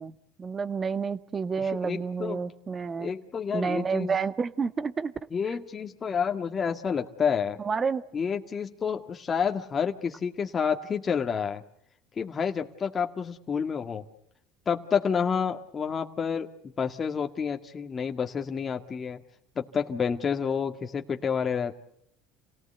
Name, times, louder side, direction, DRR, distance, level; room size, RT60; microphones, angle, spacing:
voice 1, 0.0-3.1 3.5-5.1 7.6-8.1, right 5 dB, 30° right, 13 dB, 1.6 m, -30 dB
voice 2, 1.6-2.4 3.0-4.2 5.3-7.6 8.1-11.6 12.1-14.0 14.7-19.2 19.6-21.7, left 6 dB, 30° left, 4 dB, 2.0 m, -29 dB
29.0 x 18.5 x 8.1 m, 0.73 s
supercardioid pair, 90°, 0 cm